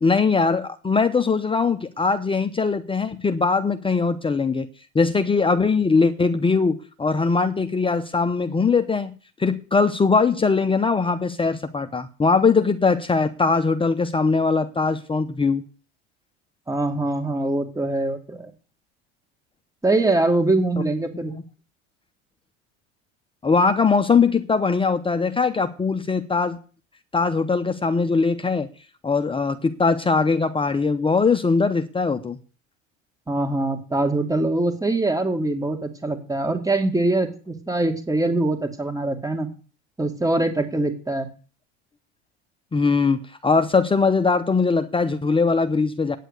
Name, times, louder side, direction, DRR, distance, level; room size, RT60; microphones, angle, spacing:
voice 1, 0.0-4.7 4.9-9.1 9.4-15.6 23.4-26.6 27.1-28.7 29.0-32.4 42.7-46.2, left 4 dB, 15° left, 8 dB, 0.8 m, -21 dB
voice 2, 16.7-18.5 19.8-21.3 33.3-39.5 40.0-41.3, right 2 dB, 10° right, 6 dB, 2.2 m, -23 dB
9.3 x 7.5 x 8.1 m, 0.38 s
hypercardioid pair, 85°, 34 cm